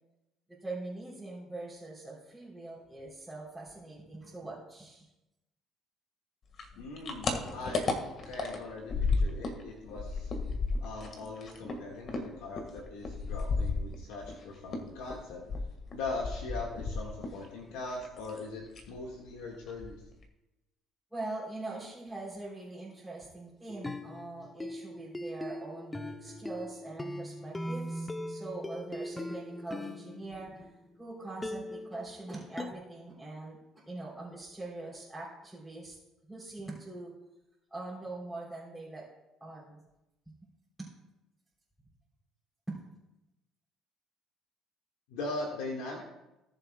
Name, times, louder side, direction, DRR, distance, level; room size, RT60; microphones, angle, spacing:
voice 1, 0.6-5.1 21.1-36.0 36.3-37.1 37.7-39.1 39.4-39.8 40.3-40.4 40.8-40.9 42.7-42.8, right 2 dB, 5° right, -8 dB, 3.5 m, -43 dB
sound 1, 6.5-9.6 9.9-14.4 14.7-17.5 17.7-18.4 18.7-19.0 19.3-19.4 19.7-20.2, left 4 dB, 50° left, 1.7 m, -33 dB
voice 2, 6.8-8.0 8.3-10.3 10.8-15.4 15.9-20.0 45.1-46.0, left 3 dB, 85° left, -1 dB, 1.7 m, -40 dB
sound 2, 23.7-31.0 31.4-32.7, left 1 dB, 15° left, 0.8 m, -40 dB
18.5 x 7.3 x 2.3 m, 0.95 s
supercardioid pair, 90°, 0 cm